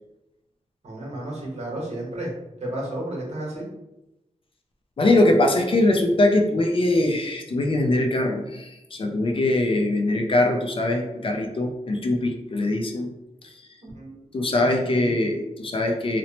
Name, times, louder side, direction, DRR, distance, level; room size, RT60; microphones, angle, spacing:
voice 1, 0.8-2.3 2.6-3.6 13.8-15.1, right 1 dB, 60° right, -4 dB, 1.0 m, -33 dB
voice 2, 5.0-13.1 13.4-13.7 14.3-16.2, left 2 dB, 45° left, 3 dB, 0.4 m, -22 dB
2.9 x 2.0 x 2.8 m, 0.94 s
wide cardioid pair, 125°, 13 cm